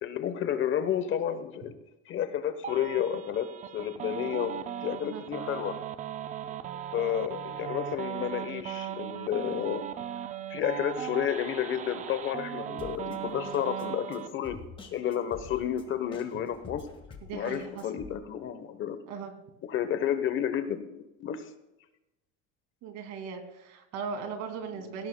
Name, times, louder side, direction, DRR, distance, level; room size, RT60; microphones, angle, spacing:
voice 1, 0.0-1.7 2.1-5.8 6.9-9.8 10.5-14.6 14.9-16.9 17.3-19.0 19.6-21.5, left 10 dB, 40° left, 10 dB, 0.9 m, -31 dB
sound 1, 2.6-14.3, right 10 dB, 25° right, 0.4 m, -38 dB
Drum kit, 12.8-18.1, left 5 dB, 15° left, 1.6 m, -48 dB
voice 2, 17.2-17.8 19.1-19.3 22.8-25.1, right 6 dB, 60° right, 5 dB, 2.5 m, -38 dB
18.5 x 16.5 x 2.2 m, 0.94 s
cardioid pair, 160°, 32 cm